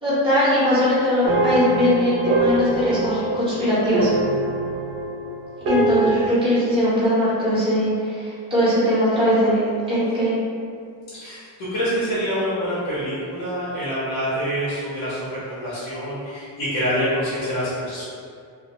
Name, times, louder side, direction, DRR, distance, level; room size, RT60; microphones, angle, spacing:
voice 1, 0.0-4.1 5.6-9.6 9.9-10.4, equal, 10° right, -13 dB, 0.9 m, -20 dB
sound 1, 1.2-6.3, right 2 dB, 85° right, 0.6 m, -24 dB
voice 2, 11.1-18.1, equal, 65° left, -12 dB, 0.9 m, -26 dB
2.2 x 2.0 x 2.8 m, 2.3 s
cardioid pair, 165°, 46 cm